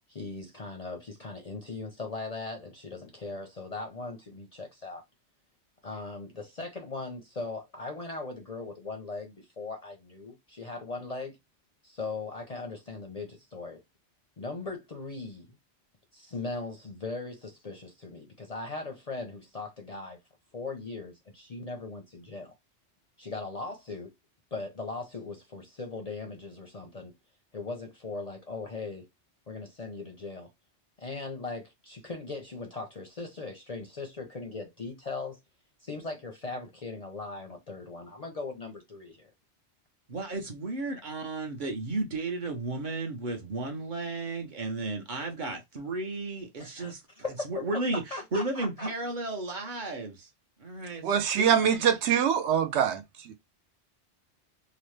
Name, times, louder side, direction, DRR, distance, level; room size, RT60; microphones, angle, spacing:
voice 1, 0.1-5.0 5.8-11.4 11.8-13.8 14.4-15.5 16.1-20.2 20.5-22.5 23.2-24.1 24.5-27.1 27.5-29.1 29.5-30.5 31.0-35.4 35.8-39.3 46.6-48.9, left 3 dB, 45° left, 0.5 m, -39 dB
voice 2, 40.1-47.0 47.4-50.3 50.6-51.5, right 2 dB, 50° right, 0.9 m, -34 dB
voice 3, 51.0-53.3, right 8 dB, 75° right, 0.8 m, -24 dB
2.9 x 2.1 x 3.1 m
omnidirectional pair, 1.2 m